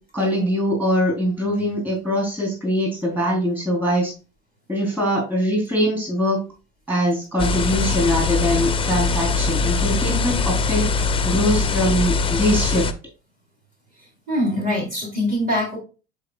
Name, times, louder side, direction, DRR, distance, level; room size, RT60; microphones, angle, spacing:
voice 1, 0.1-4.1 4.7-6.4 6.9-10.9 11.2-12.9, equal, 5° right, -2 dB, 3.6 m, -22 dB
sound 1, 7.4-12.9, left 4 dB, 15° left, 0.7 m, -22 dB
voice 2, 14.3-15.8, left 1 dB, 25° right, -2 dB, 3.7 m, -23 dB
10.5 x 4.6 x 2.4 m, 0.32 s
figure-of-eight pair, 65°, 34 cm